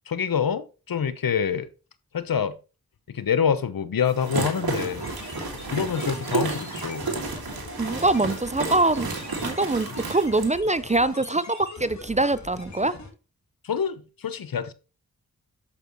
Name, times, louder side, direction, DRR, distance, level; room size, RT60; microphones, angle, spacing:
voice 1, 0.1-1.7 2.1-2.5 3.1-5.1 5.7-7.1 13.6-14.7, left 7 dB, 70° left, 0.9 m, -26 dB
sound 1, 4.1-10.5, right 3 dB, 75° right, 2.1 m, -31 dB
sound 2, 4.7-13.1, left 3 dB, 50° left, 2.5 m, -42 dB
voice 2, 7.8-9.1 9.4-13.0, right 2 dB, 20° right, 0.5 m, -23 dB
8.4 x 6.8 x 3.0 m
cardioid pair, 55°, 36 cm